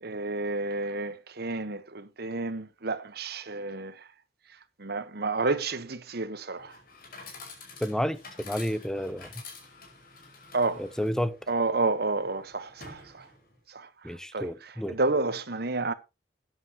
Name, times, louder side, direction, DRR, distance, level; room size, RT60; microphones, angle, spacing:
voice 1, 0.0-4.0 4.8-6.8 10.5-10.8 11.5-13.3 13.7-15.9, right 3 dB, 60° right, 1.2 m, -30 dB
Chatter / Coin (dropping), 6.6-13.6, left 4 dB, 55° left, 5.4 m, -48 dB
voice 2, 7.8-9.3 10.8-11.4 14.0-15.0, equal, 5° left, 0.7 m, -30 dB
13.5 x 10.0 x 2.9 m
head